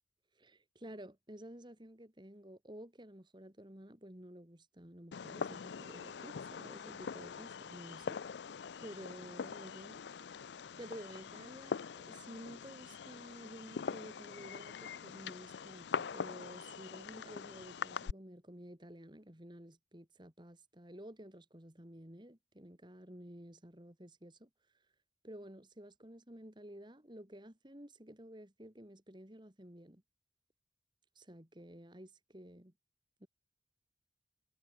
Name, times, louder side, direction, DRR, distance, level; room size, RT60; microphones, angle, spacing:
voice 1, 0.4-8.2 8.8-10.0 10.8-24.5 25.2-30.0 31.2-32.7 33.2-33.3, right 1 dB, 25° right, 2.6 m, -52 dB
Fireworks, 5.1-18.1, left 6 dB, 70° left, 0.4 m, -43 dB
head